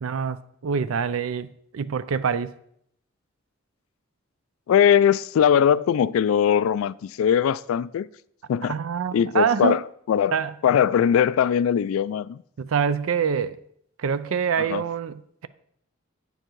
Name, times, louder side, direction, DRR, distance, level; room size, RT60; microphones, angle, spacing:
voice 1, 0.0-1.5 1.7-2.5 8.7-9.8 10.3-10.5 12.6-13.6 14.0-15.5, right 6 dB, 90° right, 0.4 m, -25 dB
voice 2, 4.7-8.1 8.5-8.8 9.1-9.8 10.1-10.4 10.6-12.4 14.6-14.8, left 8 dB, 85° left, 0.3 m, -20 dB
8.9 x 7.0 x 4.6 m
head